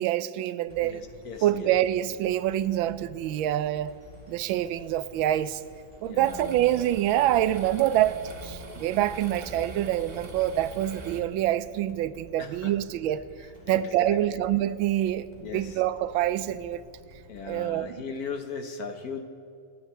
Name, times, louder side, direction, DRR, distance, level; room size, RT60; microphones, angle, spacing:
voice 1, 0.0-1.0 1.4-3.9 4.3-5.6 6.0-8.2 8.4-13.2 13.7-16.8 17.4-18.0, right 13 dB, 85° right, 14 dB, 1.4 m, -26 dB
sound 1, 0.7-17.6, left 1 dB, 10° left, 3.3 m, -52 dB
voice 2, 0.8-1.7 6.0-6.6 12.4-12.7 13.7-14.4 15.4-15.8 17.3-19.2, left 5 dB, 55° left, 6 dB, 1.3 m, -38 dB
sound 2, 6.2-11.2, right 2 dB, 35° right, 1.0 m, -42 dB
25.0 x 10.5 x 4.4 m, 2.5 s
omnidirectional pair, 2.1 m